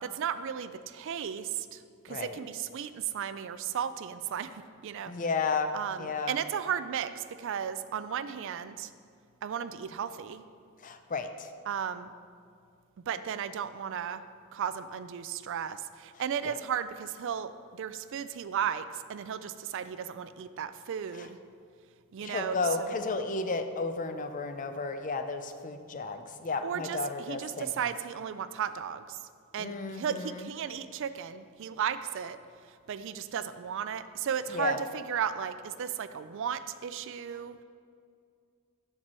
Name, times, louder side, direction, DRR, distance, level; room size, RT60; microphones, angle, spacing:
voice 1, 0.0-5.1 5.7-8.9 9.4-10.4 11.7-12.1 13.1-14.2 14.5-21.4 22.1-22.9 26.6-29.2 29.5-32.4 32.7-37.6, right 8 dB, 55° right, 12 dB, 0.3 m, -35 dB
voice 2, 2.1-2.4 5.1-6.4 10.8-11.5 16.5-16.6 22.2-27.9 29.6-30.5 34.5-34.8, left 4 dB, 35° left, 8 dB, 0.5 m, -33 dB
12.5 x 4.6 x 4.3 m, 2.3 s
head